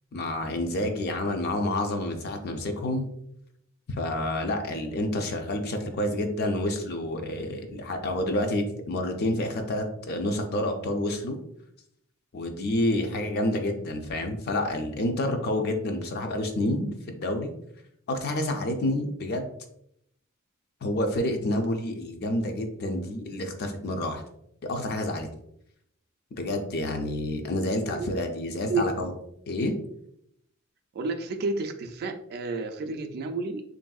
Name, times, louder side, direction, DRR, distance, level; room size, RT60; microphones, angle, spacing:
voice 1, 0.1-3.1 3.9-11.4 12.3-17.5 18.1-19.5 20.8-24.2 24.6-25.3 26.4-29.1 29.5-29.7, left 1 dB, 50° left, 5 dB, 0.4 m, -28 dB
voice 2, 30.9-33.6, right 3 dB, 50° right, 6 dB, 0.3 m, -30 dB
3.3 x 2.6 x 2.3 m, 0.74 s
head